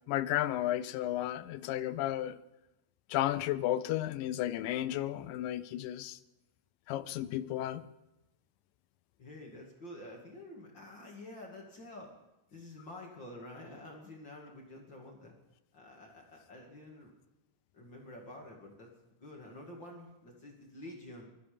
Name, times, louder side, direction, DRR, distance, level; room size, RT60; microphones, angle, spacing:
voice 1, 0.1-2.4 3.1-6.2 6.9-7.8, left 13 dB, 90° left, 2.4 m, -33 dB
voice 2, 9.2-12.1 12.5-15.3 15.7-17.1 17.7-18.9 19.2-21.3, left 1 dB, 40° left, 2.5 m, -49 dB
20.0 x 13.5 x 5.1 m
omnidirectional pair, 3.8 m